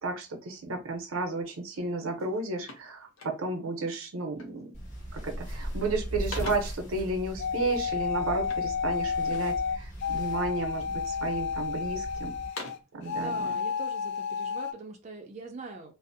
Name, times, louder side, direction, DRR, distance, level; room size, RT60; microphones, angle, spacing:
voice 1, 0.0-4.7 5.1-12.3 12.9-13.6, right 3 dB, 90° right, 4 dB, 0.6 m, -33 dB
sound 1, 1.7-1.9 2.2-3.7 4.4-4.7 5.0-5.5 5.9-6.9 8.4-9.6 10.1-10.8 11.3-11.9 12.3-13.0, left 2 dB, 80° left, 0.7 m, -45 dB
sound 2, 4.7-12.5, equal, 35° left, 1.2 m, -39 dB
sound 3, 7.4-12.8 13.1-14.7, left 6 dB, 55° left, 0.3 m, -31 dB
voice 2, 13.1-15.9, right 3 dB, 35° right, 1 dB, 0.4 m, -43 dB
2.5 x 2.0 x 2.6 m, 0.28 s
head